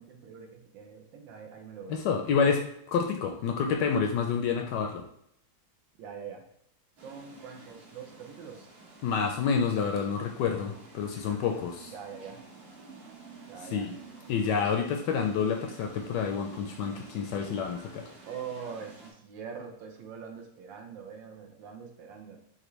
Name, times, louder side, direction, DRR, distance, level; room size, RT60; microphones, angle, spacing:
voice 1, 0.0-2.0 6.0-6.4 7.0-8.7 11.9-12.4 13.5-13.9 18.3-22.4, right 6 dB, 75° right, 3 dB, 1.4 m, -43 dB
voice 2, 1.9-5.1 9.0-11.9 13.7-13.9 14.3-18.1, left 6 dB, 75° left, 3 dB, 1.1 m, -28 dB
sound 1, 7.0-19.1, right 4 dB, 55° right, 1.6 m, -50 dB
5.9 x 2.7 x 3.0 m, 0.71 s
omnidirectional pair, 2.1 m